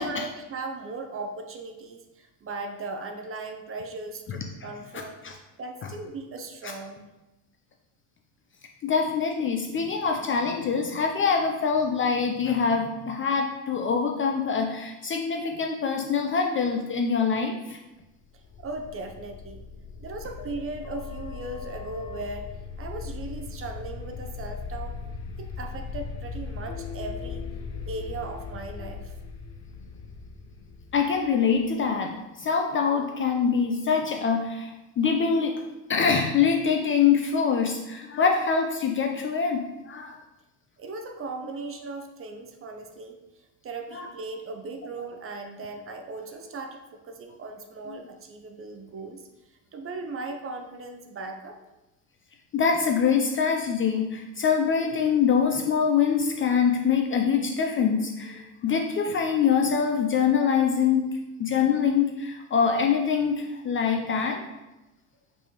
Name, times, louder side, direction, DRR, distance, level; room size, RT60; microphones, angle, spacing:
voice 1, 0.0-7.0 18.6-19.6 20.0-22.5 22.8-25.0 25.4-27.5 27.9-29.1 40.8-49.3 49.7-51.6, right 3 dB, 30° right, 5 dB, 0.6 m, -38 dB
voice 2, 8.8-17.8 30.9-35.5 35.9-40.2 43.9-44.1 47.9-48.0 52.5-61.1 61.4-64.4, left 6 dB, 30° left, 3 dB, 0.4 m, -24 dB
sound 1, 18.3-32.0, left 5 dB, 50° left, 0.8 m, -38 dB
5.1 x 3.3 x 2.9 m, 1.0 s
hypercardioid pair, 65°, 47 cm